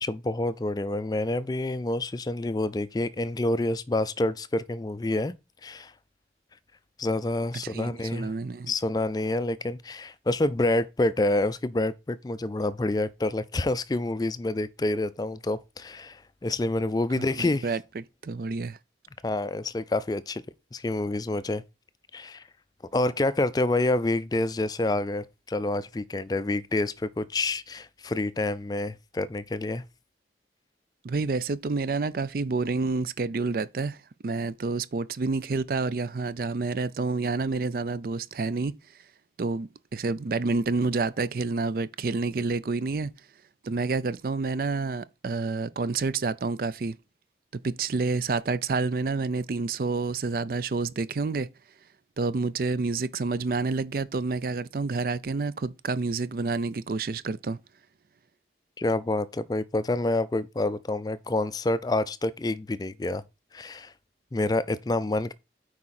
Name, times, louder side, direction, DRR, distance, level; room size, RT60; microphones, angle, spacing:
voice 1, 0.0-5.3 5.6-5.9 7.0-8.3 8.7-17.7 19.2-20.4 20.7-21.6 22.1-22.4 22.9-29.8 58.8-63.2 63.5-63.9 64.3-65.3, left 2 dB, 20° left, 0.4 m, -28 dB
voice 2, 7.6-8.7 17.1-18.8 31.0-34.0 34.2-38.8 39.4-43.1 43.6-47.0 47.5-51.5 52.2-57.6, right 3 dB, 55° right, 0.4 m, -29 dB
8.5 x 4.9 x 4.2 m
head